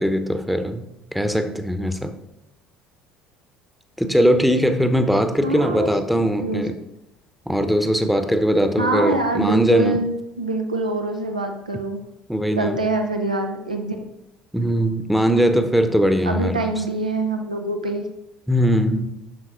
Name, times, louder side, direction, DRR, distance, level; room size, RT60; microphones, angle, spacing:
voice 1, 0.0-2.1 4.0-6.7 7.5-10.0 12.3-12.8 14.5-16.6 18.5-19.2, equal, ahead, 8 dB, 0.9 m, -20 dB
voice 2, 5.4-5.9 6.2-6.6 8.8-12.0 12.6-14.0 16.3-18.1, right 2 dB, 90° right, 4 dB, 0.8 m, -24 dB
9.3 x 6.1 x 3.8 m, 0.87 s
figure-of-eight pair, 60°, 4 cm